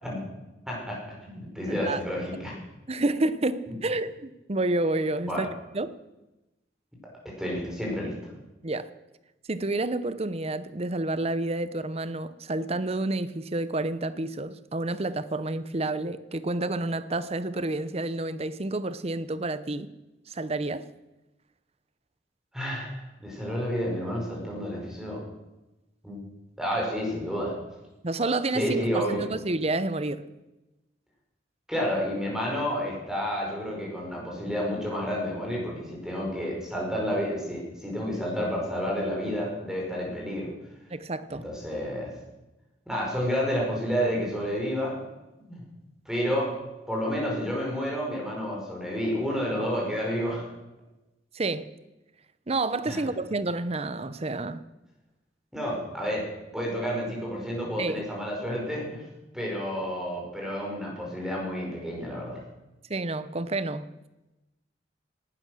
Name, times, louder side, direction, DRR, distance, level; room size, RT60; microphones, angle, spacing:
voice 1, 0.7-2.5 5.3-5.4 7.4-8.1 22.5-25.2 26.0-26.2 26.6-27.5 28.5-29.2 31.7-40.5 41.3-42.1 42.9-44.9 45.5-45.6 46.0-46.5 46.9-50.5 52.9-53.0 55.5-56.3 56.5-59.0 59.3-62.4, equal, 5° right, 5.2 m, -30 dB
voice 2, 1.7-2.0 2.9-5.5 5.7-5.9 8.6-8.9 9.5-19.9 20.3-20.9 28.0-30.3 40.9-41.5 51.3-51.7 52.5-54.6 57.8-58.0 62.9-63.9, right 2 dB, 35° right, 0.8 m, -29 dB
18.5 x 12.5 x 6.3 m
head